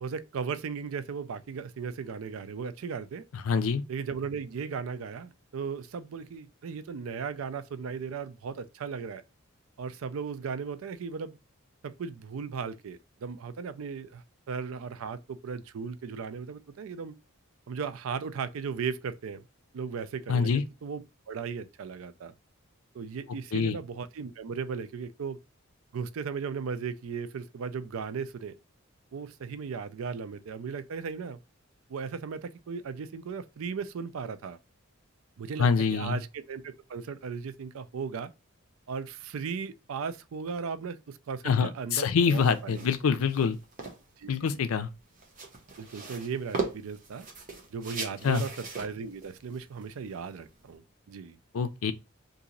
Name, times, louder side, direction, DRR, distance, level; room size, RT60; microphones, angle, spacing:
voice 1, 0.0-3.2 3.9-9.2 9.8-11.4 11.8-17.1 17.7-19.4 19.7-22.3 22.9-25.4 25.9-28.6 29.1-31.4 31.9-34.6 35.4-38.3 38.9-43.1 44.2-44.7 45.8-47.3 47.7-51.4, right 5 dB, 80° right, 0.4 m, -36 dB
voice 2, 3.5-3.8 20.3-20.6 23.5-23.7 35.6-36.2 41.4-43.6 44.3-44.9 48.2-48.4 51.5-51.9, left 6 dB, 85° left, 0.4 m, -25 dB
sound 1, 42.2-50.7, right 3 dB, 40° right, 0.8 m, -40 dB
2.9 x 2.6 x 3.8 m
head